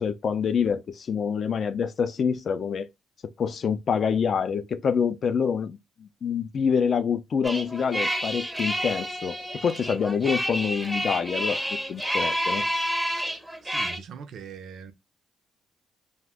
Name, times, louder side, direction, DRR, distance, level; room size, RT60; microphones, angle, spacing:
voice 1, 0.0-2.9 3.4-9.4 9.6-11.6 11.9-12.6, left 6 dB, 50° left, 0.4 m, -26 dB
sound 1, 7.4-14.0, equal, 5° right, 0.5 m, -29 dB
voice 2, 13.6-14.9, right 6 dB, 70° right, 0.4 m, -41 dB
2.5 x 2.1 x 3.5 m
cardioid pair, 90°, 0 cm